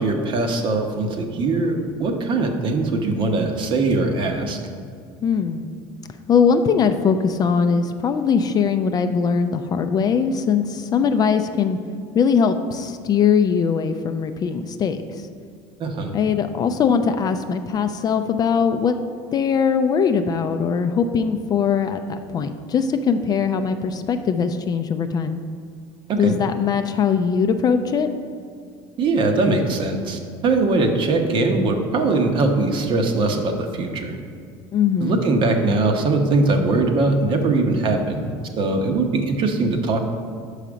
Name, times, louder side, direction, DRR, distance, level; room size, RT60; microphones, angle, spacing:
voice 1, 0.0-4.6 15.8-16.1 26.1-26.3 29.0-34.2 35.0-40.0, right 3 dB, 45° right, 4 dB, 0.9 m, -21 dB
voice 2, 5.2-5.7 6.3-11.8 12.1-15.2 16.1-19.0 19.3-25.4 26.2-28.1 34.7-35.2, left 6 dB, 35° left, 8 dB, 0.4 m, -21 dB
5.6 x 4.9 x 6.1 m, 2.2 s
cardioid pair, 120°, 12 cm